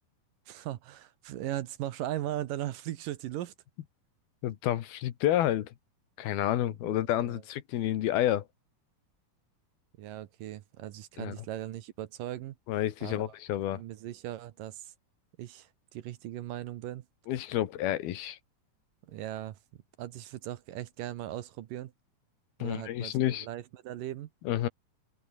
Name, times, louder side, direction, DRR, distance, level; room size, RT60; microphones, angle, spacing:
voice 1, 0.5-3.5 6.9-7.4 10.0-12.6 13.0-13.3 13.7-14.9 15.4-17.1 19.1-19.6 20.0-21.9 22.6-24.3, right 13 dB, 70° right, 2.5 m, -38 dB
voice 2, 4.4-5.7 6.2-8.4 11.2-11.3 12.7-13.8 17.3-18.4 22.6-23.5 24.4-24.7, left 12 dB, 80° left, 3.3 m, -29 dB
open air
omnidirectional pair, 4.4 m